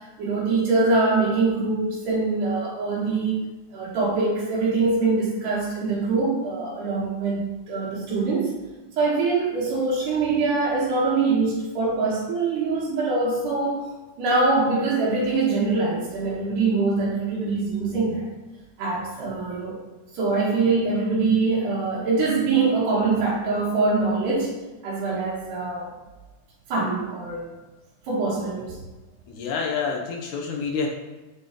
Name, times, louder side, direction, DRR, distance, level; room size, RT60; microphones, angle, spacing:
voice 1, 0.2-3.4 3.7-8.6 9.0-18.3 18.8-19.8 20.1-25.9 26.7-27.4 28.1-28.8, right 3 dB, 80° right, -9 dB, 2.9 m, -23 dB
voice 2, 29.3-30.9, left 5 dB, 75° left, 1 dB, 2.2 m, -28 dB
8.9 x 4.2 x 3.7 m, 1.1 s
omnidirectional pair, 3.7 m